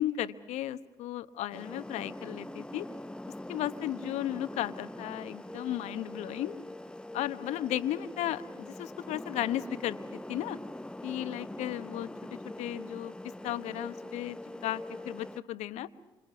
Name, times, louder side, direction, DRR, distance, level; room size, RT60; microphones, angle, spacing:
voice 1, 0.0-2.9 3.5-6.6 7.1-10.6 11.0-12.1 12.6-13.1 13.4-14.4 14.6-15.9, left 12 dB, 70° left, 12 dB, 1.0 m, -35 dB
sound 1, 1.5-15.4, left 1 dB, 10° left, 0.8 m, -43 dB
28.0 x 26.5 x 6.0 m, 1.1 s
hypercardioid pair, 45°, 12 cm